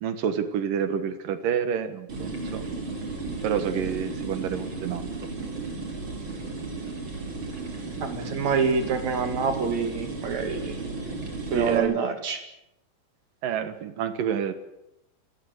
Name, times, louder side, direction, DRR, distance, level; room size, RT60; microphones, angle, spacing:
voice 1, 0.0-2.7 3.4-5.3 11.5-12.0 13.4-14.5, right 8 dB, 70° right, 11 dB, 3.1 m, -28 dB
sound 1, 2.1-11.8, right 3 dB, 35° right, 4.5 m, -34 dB
voice 2, 8.0-10.8 11.5-12.4, right 5 dB, 55° right, 7 dB, 3.5 m, -26 dB
29.0 x 16.0 x 8.2 m, 0.85 s
omnidirectional pair, 4.2 m